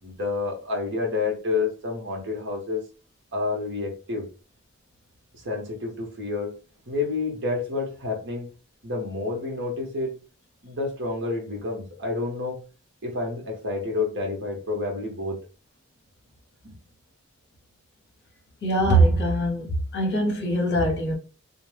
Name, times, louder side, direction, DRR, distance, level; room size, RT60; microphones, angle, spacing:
voice 1, 0.0-2.8 3.3-4.3 5.3-6.5 6.9-8.5 8.8-10.2 10.6-12.6 13.0-15.4 16.6-16.8, left 3 dB, 55° right, 1.0 m, -29 dB
voice 2, 18.6-21.1, right 1 dB, 55° left, 0.9 m, -22 dB
2.3 x 2.2 x 3.2 m
head